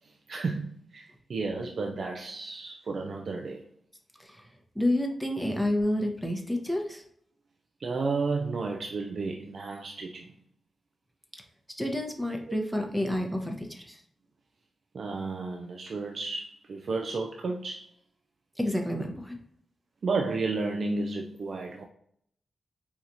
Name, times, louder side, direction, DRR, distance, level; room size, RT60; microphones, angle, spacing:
voice 1, 0.0-3.6 7.8-10.3 12.5-12.6 14.9-17.9 20.0-21.8, right 3 dB, 60° right, 2 dB, 0.4 m, -32 dB
voice 2, 4.7-7.0 11.8-14.0 18.6-19.4, left 1 dB, 5° right, 2 dB, 0.7 m, -29 dB
4.3 x 2.4 x 2.6 m, 0.67 s
cardioid pair, 85°, 0 cm